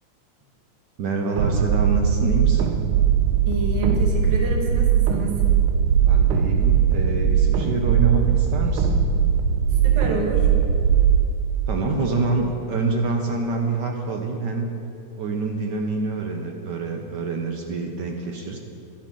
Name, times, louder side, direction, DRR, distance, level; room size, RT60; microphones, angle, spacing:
voice 1, 1.0-2.8 6.1-8.9 11.7-14.7 15.2-18.6, right 3 dB, 65° right, 2 dB, 1.3 m, -26 dB
sound 1, 1.4-11.2, right 8 dB, 90° right, 1.6 m, -20 dB
voice 2, 3.4-5.4 9.8-10.5, right 2 dB, 20° right, 0 dB, 0.8 m, -28 dB
12.0 x 11.5 x 3.7 m, 2.7 s
omnidirectional pair, 2.4 m